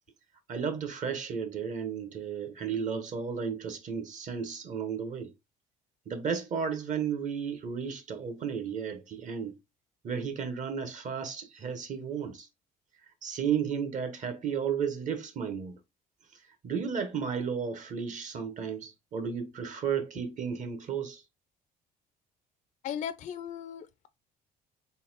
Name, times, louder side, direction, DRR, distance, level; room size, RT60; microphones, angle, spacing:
voice 1, 0.5-5.3 6.1-9.6 10.0-12.5 13.2-15.8 16.6-21.2, right 7 dB, 45° right, 0.9 m, -33 dB
voice 2, 22.8-24.1, left 9 dB, 50° left, 0.4 m, -37 dB
4.0 x 2.2 x 3.8 m
cardioid pair, 110°, 17 cm